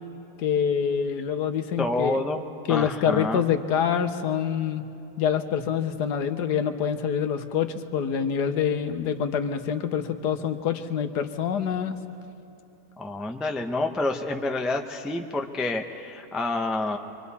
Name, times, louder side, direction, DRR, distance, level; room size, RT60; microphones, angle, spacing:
voice 1, 0.4-2.2 2.7-4.8 5.2-12.0, left 8 dB, 75° left, 8 dB, 1.4 m, -26 dB
voice 2, 1.8-3.4 13.0-17.0, left 2 dB, ahead, 3 dB, 0.5 m, -28 dB
25.5 x 24.5 x 4.2 m, 2.9 s
omnidirectional pair, 1.8 m